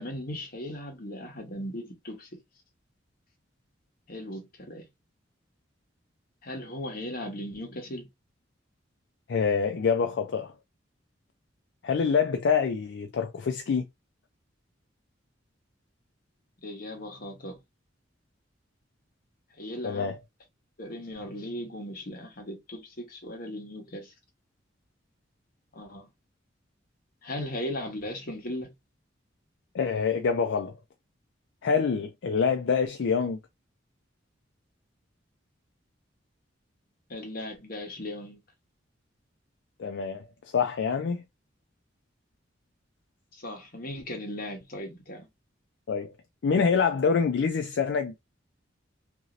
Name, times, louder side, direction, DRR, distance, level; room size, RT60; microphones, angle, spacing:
voice 1, 0.0-2.4 4.1-4.9 6.4-8.1 16.6-17.6 19.6-20.2 20.8-24.1 25.7-26.1 27.2-28.7 37.1-38.4 43.3-45.3, left 1 dB, 50° left, 1.1 m, -37 dB
voice 2, 9.3-10.5 11.8-13.8 19.8-20.2 29.7-30.7 31.6-33.4 39.8-40.3 40.5-41.2 45.9-46.1 46.4-48.2, left 6 dB, 70° left, 0.4 m, -26 dB
2.9 x 2.7 x 2.5 m
head